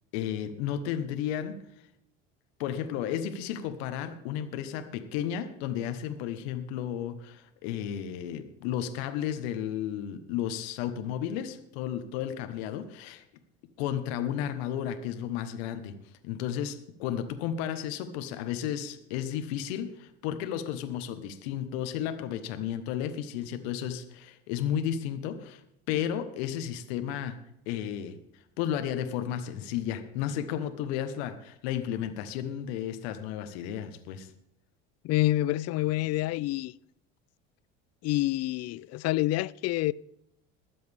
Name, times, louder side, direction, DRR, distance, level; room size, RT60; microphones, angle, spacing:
voice 1, 0.1-1.6 2.6-13.2 13.8-16.0 16.2-27.3 27.7-34.3, left 10 dB, 80° left, 1.3 m, -33 dB
voice 2, 35.0-36.7 38.0-39.9, left 16 dB, 50° left, 0.5 m, -27 dB
22.5 x 7.7 x 3.5 m
supercardioid pair, 85°, 32 cm